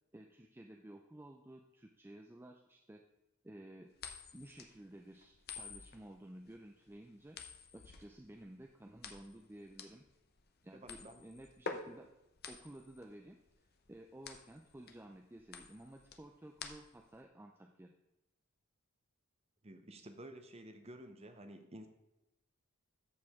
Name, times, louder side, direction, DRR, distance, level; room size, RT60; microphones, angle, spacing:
voice 1, 0.1-3.0 3.4-3.9 4.3-10.0 10.6-12.1 12.5-13.4 13.9-17.9, right 1 dB, 10° right, 2 dB, 0.4 m, -54 dB
sound 1, 4.0-17.2, left 5 dB, 45° left, 0.7 m, -49 dB
voice 2, 10.8-11.2 19.6-21.9, right 1 dB, 30° right, 7 dB, 0.7 m, -52 dB
13.5 x 4.8 x 3.6 m, 0.94 s
head